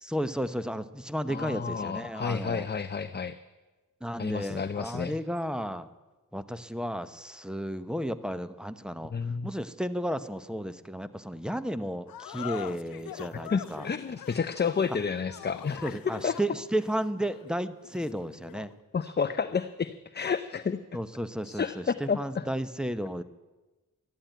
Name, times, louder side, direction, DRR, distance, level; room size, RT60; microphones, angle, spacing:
voice 1, 0.0-2.7 4.0-5.9 6.3-9.1 9.4-13.9 15.8-18.7 20.9-23.2, equal, ahead, 12 dB, 0.8 m, -33 dB
voice 2, 1.3-3.3 4.2-5.2 9.1-9.5 13.3-16.4 18.9-20.8 21.4-22.5, left 6 dB, 30° left, 11 dB, 0.6 m, -31 dB
sound 1, 12.1-18.8, left 11 dB, 80° left, 0.5 m, -43 dB
13.0 x 11.5 x 9.1 m, 1.2 s
wide cardioid pair, 75°, 34 cm